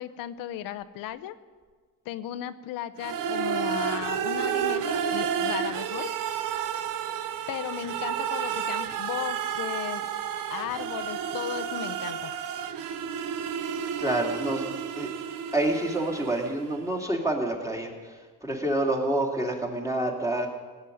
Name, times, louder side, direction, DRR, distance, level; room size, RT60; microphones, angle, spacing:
voice 1, 0.0-1.4 2.1-6.1 7.5-10.1 10.5-12.3, left 12 dB, 90° left, 10 dB, 0.7 m, -36 dB
sound 1, 3.0-16.8, right 8 dB, 75° right, 0.9 m, -31 dB
voice 2, 14.0-14.7 15.0-15.1 15.5-20.5, right 1 dB, 10° right, -1 dB, 2.7 m, -28 dB
16.5 x 8.1 x 9.9 m, 1.5 s
cardioid pair, 110°, 33 cm